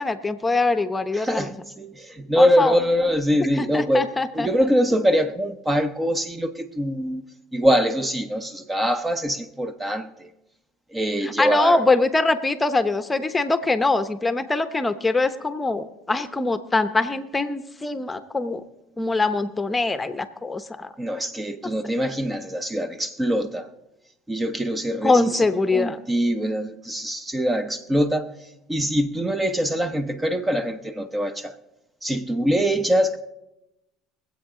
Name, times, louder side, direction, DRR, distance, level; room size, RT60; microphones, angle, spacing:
voice 1, 0.0-1.5 2.4-2.7 3.6-4.5 11.2-18.6 19.0-20.9 25.0-26.0, left 3 dB, 15° left, 0.9 m, -23 dB
voice 2, 1.1-7.2 7.5-10.3 10.9-11.8 21.0-23.7 24.3-25.5 25.7-28.3 28.7-31.6 32.0-33.2, equal, 15° right, 0.9 m, -23 dB
23.0 x 8.2 x 3.8 m
supercardioid pair, 85°, 0 cm